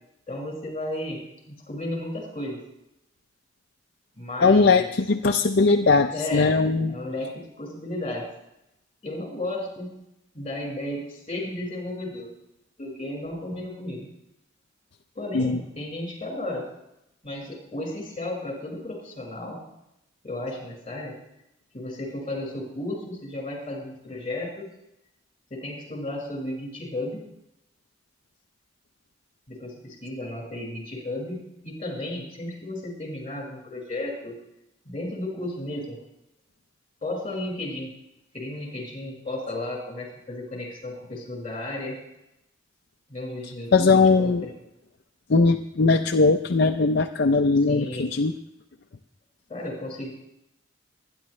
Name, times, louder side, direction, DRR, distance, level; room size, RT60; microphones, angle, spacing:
voice 1, 0.3-2.6 4.2-4.9 6.1-6.5 6.9-8.3 9.0-10.0 10.3-12.3 12.8-14.1 15.2-16.7 17.2-19.6 20.2-21.2 21.7-24.7 25.5-27.2 29.5-34.4 34.9-36.0 37.0-37.9 38.3-42.0 43.1-44.5 47.7-48.1 49.5-50.1, left 1 dB, 30° left, 0 dB, 5.2 m, -34 dB
voice 2, 4.4-7.0 15.3-15.6 43.7-44.4 45.3-48.4, left 4 dB, 55° left, 5 dB, 0.5 m, -20 dB
24.0 x 10.5 x 3.2 m, 0.85 s
head